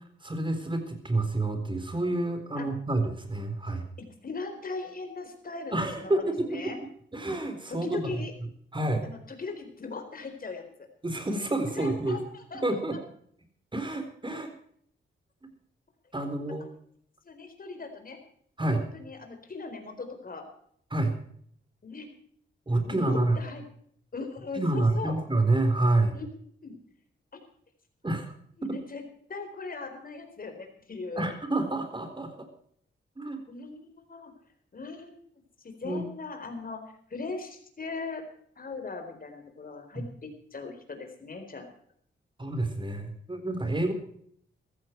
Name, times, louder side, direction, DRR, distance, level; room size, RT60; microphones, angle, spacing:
voice 1, 0.2-3.9 5.7-6.6 7.1-8.2 8.7-9.1 11.0-12.2 12.6-13.0 13.7-14.5 16.1-16.6 18.6-18.8 20.9-21.2 22.7-23.4 24.5-26.2 28.0-28.3 28.6-28.8 31.2-32.5 33.2-33.4 35.8-36.1 39.9-40.0 42.4-43.9, right 2 dB, 25° right, 7 dB, 4.0 m, -28 dB
voice 2, 4.0-6.8 7.7-8.3 9.0-10.6 11.7-12.6 17.2-18.2 18.6-20.4 21.8-22.1 22.8-23.6 24.1-25.1 26.1-26.3 26.6-26.8 28.6-29.0 29.3-31.3 33.5-34.3 34.7-35.2 35.6-36.8 37.1-38.2 38.6-41.7, left 4 dB, 45° left, 5 dB, 4.3 m, -39 dB
15.5 x 14.5 x 4.6 m, 0.64 s
cardioid pair, 85°, 21 cm